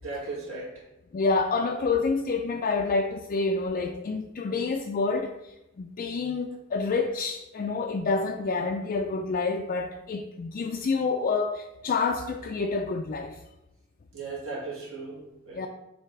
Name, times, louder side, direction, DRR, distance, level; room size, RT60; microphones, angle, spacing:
voice 1, 0.0-0.7 14.1-15.7, right 3 dB, 65° right, -6 dB, 2.2 m, -37 dB
voice 2, 1.1-5.3 5.8-13.4 15.5-15.7, left 4 dB, 40° left, 3 dB, 0.4 m, -28 dB
7.5 x 2.8 x 4.5 m, 0.96 s
head